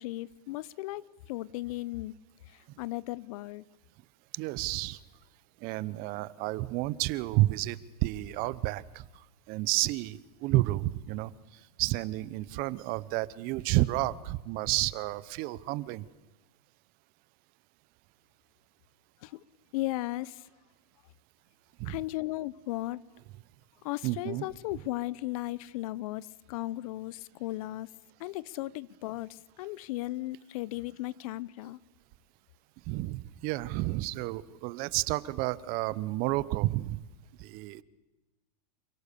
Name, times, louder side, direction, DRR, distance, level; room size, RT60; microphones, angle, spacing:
voice 1, 0.0-2.1 2.5-3.6 19.2-19.4 19.7-20.5 21.8-23.0 23.8-27.9 28.2-31.8, left 17 dB, 60° left, 0.8 m, -36 dB
voice 2, 4.3-5.0 5.6-11.3 11.8-16.0 21.8-22.0 24.0-24.4 32.9-37.0 37.4-37.8, right 18 dB, 45° right, 0.9 m, -31 dB
28.5 x 17.5 x 6.9 m
hypercardioid pair, 115°, 21 cm